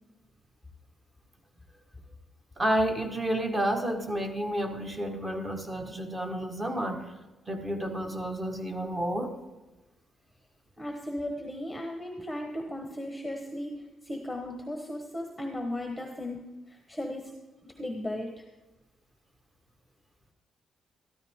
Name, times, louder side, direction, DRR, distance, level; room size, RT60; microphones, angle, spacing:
voice 1, 2.6-7.1 7.5-9.3, right 1 dB, 20° right, 4 dB, 1.5 m, -30 dB
voice 2, 10.8-17.3 17.6-18.5, left 1 dB, 5° left, 2 dB, 1.2 m, -36 dB
13.5 x 13.0 x 3.7 m, 1.1 s
cardioid pair, 135°, 0 cm